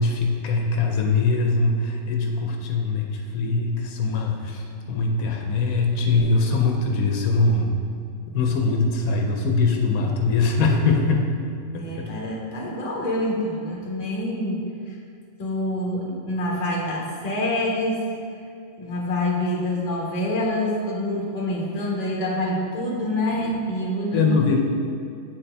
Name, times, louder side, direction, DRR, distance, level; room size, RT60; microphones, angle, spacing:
voice 1, 0.0-7.7 8.3-11.3 11.7-12.1 24.1-24.6, left 3 dB, 85° left, 1 dB, 1.1 m, -22 dB
voice 2, 11.7-15.0 15.4-18.1 18.8-24.6, left 1 dB, 30° left, -3 dB, 1.0 m, -26 dB
8.2 x 4.2 x 3.3 m, 2.5 s
omnidirectional pair, 1.5 m